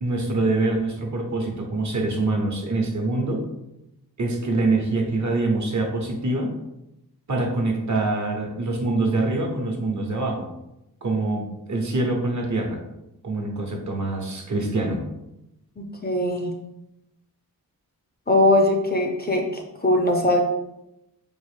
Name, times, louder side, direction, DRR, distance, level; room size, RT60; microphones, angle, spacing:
voice 1, 0.0-3.4 4.2-6.5 7.3-10.5 11.0-12.8 13.2-15.0, right 2 dB, 50° right, 1 dB, 0.9 m, -25 dB
voice 2, 15.8-16.5 18.3-19.4 19.8-20.4, left 1 dB, 25° left, 2 dB, 0.5 m, -20 dB
4.4 x 2.6 x 3.3 m, 0.89 s
wide cardioid pair, 85°, 37 cm